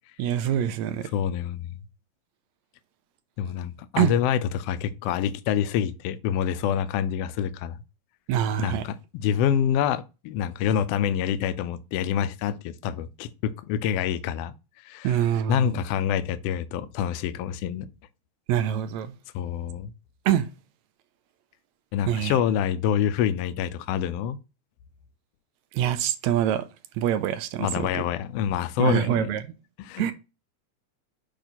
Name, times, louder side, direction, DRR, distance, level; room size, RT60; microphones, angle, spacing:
voice 1, 0.2-1.1 4.0-4.1 8.3-8.9 15.0-15.8 18.5-19.1 20.3-20.5 22.1-22.4 25.7-26.7 27.0-28.0 28.8-29.4 30.0-30.1, right 10 dB, 80° right, 1.8 m, -25 dB
voice 2, 1.1-1.8 3.4-7.8 8.6-14.5 14.8-15.2 15.5-17.9 19.3-19.9 21.9-24.4 27.6-29.3 29.8-30.1, left 9 dB, 85° left, 1.4 m, -27 dB
8.7 x 3.1 x 4.2 m
omnidirectional pair, 3.3 m